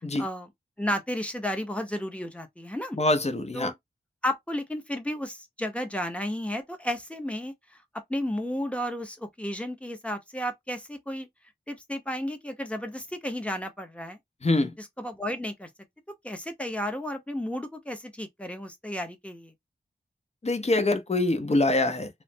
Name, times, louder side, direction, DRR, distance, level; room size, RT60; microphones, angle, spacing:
voice 1, 0.2-0.5 0.8-3.0 3.5-3.7 4.2-7.5 8.1-11.3 11.7-14.2 14.8-15.7 16.2-19.5, equal, 5° left, 0.8 m, -33 dB
voice 2, 2.9-3.7 14.4-14.7 20.4-22.1, left 2 dB, 35° left, 0.7 m, -24 dB
3.2 x 2.0 x 2.6 m
wide cardioid pair, 50°, 19 cm